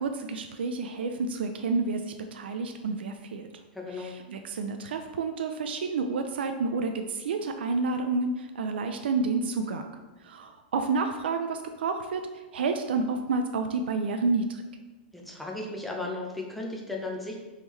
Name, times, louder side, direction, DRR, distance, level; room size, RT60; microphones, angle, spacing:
voice 1, 0.0-3.5 3.9-9.8 10.2-14.6, right 4 dB, 85° right, 6 dB, 0.3 m, -30 dB
voice 2, 3.7-4.2 15.1-17.4, left 2 dB, ahead, -1 dB, 0.5 m, -35 dB
3.5 x 3.2 x 3.1 m, 1.2 s
hypercardioid pair, 160°, 5 cm